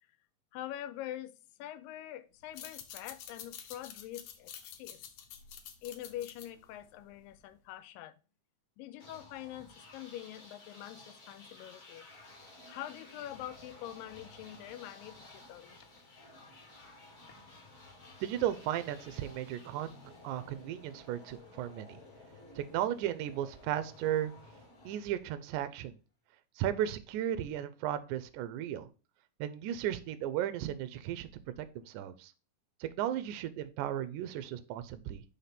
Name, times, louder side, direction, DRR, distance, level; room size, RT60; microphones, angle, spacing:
voice 1, 0.5-1.3 1.6-5.0 5.8-8.2 8.8-12.1 12.7-15.8, left 12 dB, 90° left, 2.3 m, -44 dB
sound 1, 2.4-7.6, left 9 dB, 75° left, 1.9 m, -49 dB
sound 2, 9.0-25.7, left 2 dB, 35° left, 1.5 m, -54 dB
voice 2, 18.2-22.0 22.6-24.3 24.9-25.9 26.6-28.9 29.4-31.3 31.6-32.3 32.8-35.2, right 11 dB, 80° right, 1.8 m, -35 dB
5.7 x 3.3 x 5.7 m
omnidirectional pair, 3.9 m